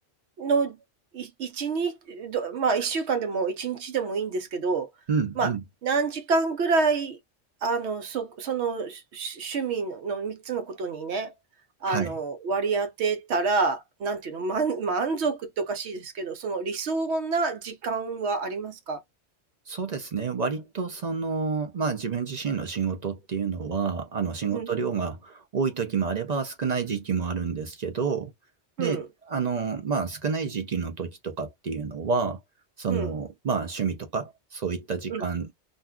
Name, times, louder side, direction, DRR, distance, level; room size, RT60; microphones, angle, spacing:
voice 1, 0.4-0.8 1.1-4.9 5.4-5.5 5.8-7.2 7.6-11.3 11.8-19.0 24.5-24.8 28.8-29.1 32.9-33.1 35.1-35.2, right 4 dB, 70° right, 0.9 m, -28 dB
voice 2, 5.1-5.6 11.8-12.1 19.7-28.3 28.8-32.4 32.8-35.5, right 5 dB, 50° right, 0.5 m, -29 dB
2.5 x 2.2 x 3.5 m
omnidirectional pair, 1.2 m